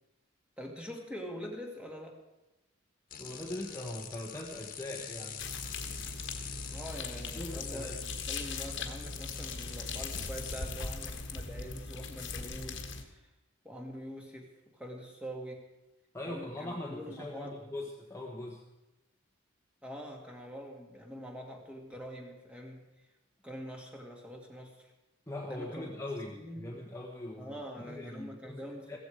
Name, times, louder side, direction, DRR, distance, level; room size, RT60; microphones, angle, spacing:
voice 1, 0.6-2.2 6.7-13.3 13.6-15.6 16.2-17.7 19.8-23.1 23.4-24.9 25.5-25.9 26.3-26.7 27.4-29.0, equal, 5° right, 1 dB, 2.3 m, -44 dB
sound 1, 3.1-10.7, left 7 dB, 40° left, 1.7 m, -45 dB
voice 2, 3.2-5.4 7.3-8.0 16.1-18.6 25.3-29.0, left 1 dB, 15° left, -1 dB, 1.4 m, -41 dB
sound 2, 5.4-13.0, left 4 dB, 60° left, 1.6 m, -40 dB
16.0 x 14.5 x 5.0 m, 0.98 s
head